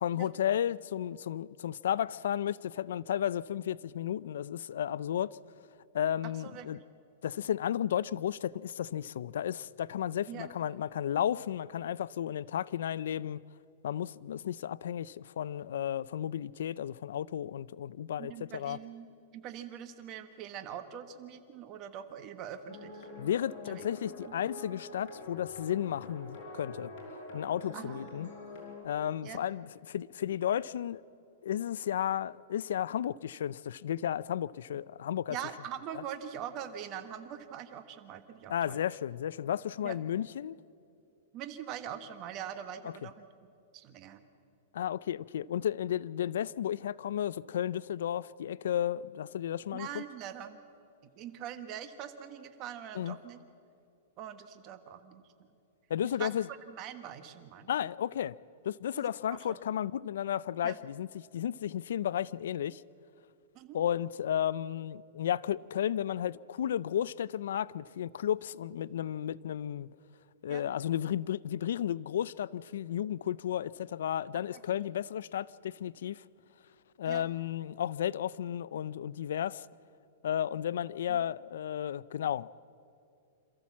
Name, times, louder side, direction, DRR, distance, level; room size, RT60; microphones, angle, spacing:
voice 1, 0.0-5.4 5.9-6.8 7.2-13.4 13.8-18.8 23.2-26.9 27.3-28.3 28.8-31.0 31.4-35.4 38.5-40.6 44.7-50.0 52.9-53.2 55.9-56.5 57.7-58.4 58.6-62.8 63.7-69.9 70.4-76.2 77.0-79.7 80.2-82.5, left 10 dB, 75° left, 0.4 m, -33 dB
voice 2, 6.4-6.8 10.3-10.5 18.2-23.1 23.7-23.8 24.2-24.3 27.7-28.0 29.2-29.4 35.3-38.8 39.8-40.0 41.3-43.3 43.7-44.2 49.7-50.6 51.2-53.4 54.2-55.2 56.0-56.3 56.7-57.7 59.3-59.6 60.6-60.8 63.5-63.8 70.5-70.6 74.5-74.8 77.0-77.2 81.1-81.2, right 9 dB, 30° right, 1.4 m, -43 dB
sound 1, 22.7-28.9, left 2 dB, 45° left, 5.7 m, -46 dB
27.0 x 14.0 x 7.4 m
supercardioid pair, 155°, 0 cm